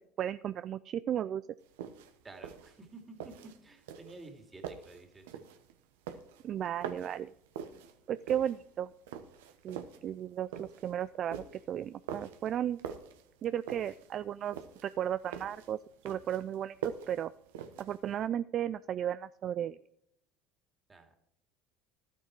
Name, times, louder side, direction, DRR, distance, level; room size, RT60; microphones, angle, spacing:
voice 1, 0.2-1.4 6.4-7.3 8.1-8.9 9.6-12.8 13.4-14.6 14.8-15.8 16.0-17.3 17.8-19.8, right 10 dB, 50° right, 15 dB, 0.3 m, -34 dB
sound 1, 1.6-18.2, right 8 dB, 80° right, 1.1 m, -45 dB
voice 2, 2.2-3.3 3.6-5.2 20.9-21.2, right 3 dB, 20° right, 4 dB, 2.6 m, -51 dB
12.5 x 8.9 x 4.6 m, 0.73 s
hypercardioid pair, 80°, 0 cm